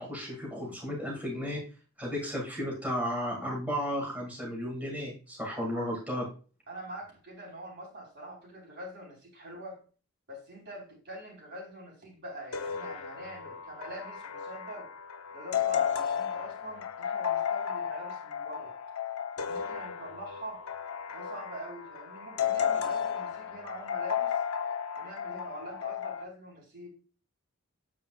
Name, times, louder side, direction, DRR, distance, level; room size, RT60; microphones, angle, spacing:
voice 1, 0.0-1.6 2.0-6.3, equal, 5° right, -3 dB, 1.8 m, -34 dB
voice 2, 6.7-9.8 10.3-14.9 15.3-18.8 19.4-20.6 21.1-24.4 24.9-26.9, equal, 50° right, -1 dB, 3.6 m, -44 dB
sound 1, 12.5-26.2, left 8 dB, 85° left, 0.6 m, -34 dB
8.8 x 7.3 x 2.2 m, 0.37 s
head